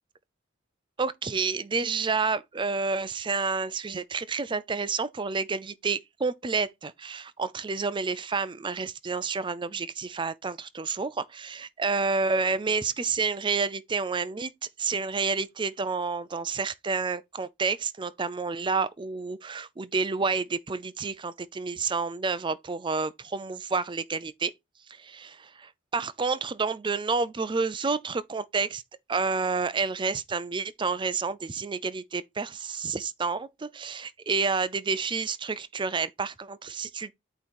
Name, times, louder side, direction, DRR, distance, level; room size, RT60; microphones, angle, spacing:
voice 1, 1.0-14.5 14.8-24.5 24.9-28.8 29.1-37.1, right 4 dB, 25° right, 0.4 m, -29 dB
8.5 x 3.0 x 4.3 m
head